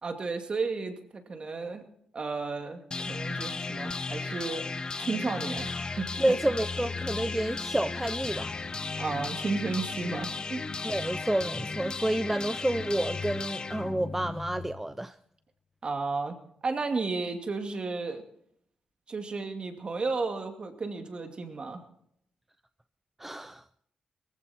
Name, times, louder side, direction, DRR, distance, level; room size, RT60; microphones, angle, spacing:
voice 1, 0.0-1.8 2.1-2.8 3.1-4.6 5.0-6.3 9.0-10.6 15.8-16.4 16.6-18.2 19.1-21.8, right 4 dB, 40° right, 2.4 m, -33 dB
sound 1, 2.9-14.9, left 4 dB, 35° left, 0.8 m, -35 dB
voice 2, 6.2-8.6 10.8-15.2 23.2-23.6, right 1 dB, 10° right, 0.5 m, -29 dB
19.0 x 15.0 x 4.4 m
cardioid pair, 90°, 3 cm